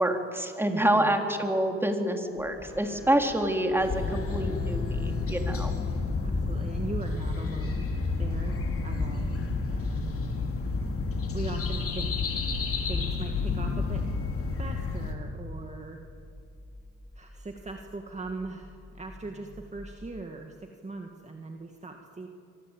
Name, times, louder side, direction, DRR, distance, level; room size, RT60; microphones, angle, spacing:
voice 1, 0.0-5.7, right 1 dB, 10° right, 3 dB, 3.7 m, -27 dB
voice 2, 0.7-1.2 6.2-7.9 8.2-8.6 8.8-9.3 9.6-10.3 11.3-12.1 12.9-14.0 14.6-16.0 17.1-22.3, right 3 dB, 25° right, 3 dB, 2.3 m, -40 dB
sound 1, 2.4-20.2, left 1 dB, 10° left, 1.9 m, -39 dB
Wind instrument woodwind instrument, 2.6-6.0, equal, 75° left, 6.0 m, -47 dB
sound 2, 3.8-15.1, left 4 dB, 50° left, 3.8 m, -31 dB
25.0 x 24.5 x 9.2 m, 2.5 s
cardioid pair, 90°, 30 cm